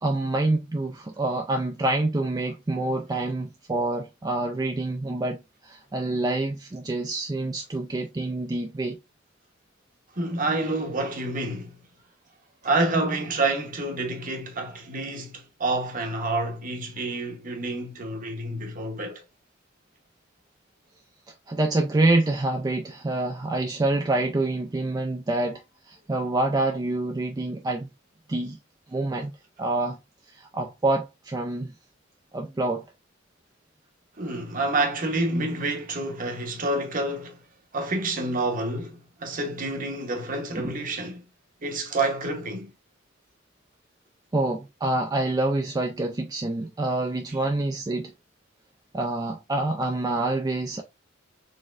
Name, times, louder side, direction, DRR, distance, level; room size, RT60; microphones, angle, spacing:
voice 1, 0.0-9.0 21.5-27.9 28.3-28.6 28.9-29.3 29.6-30.0 30.3-31.7 32.3-32.8 40.6-40.7 44.3-48.1 48.9-50.8, right 2 dB, 20° right, 0.4 m, -27 dB
voice 2, 10.1-11.8 12.6-19.2 34.2-37.4 37.7-41.2 41.6-42.7, right 2 dB, 45° right, 0.9 m, -28 dB
4.0 x 3.6 x 2.4 m
head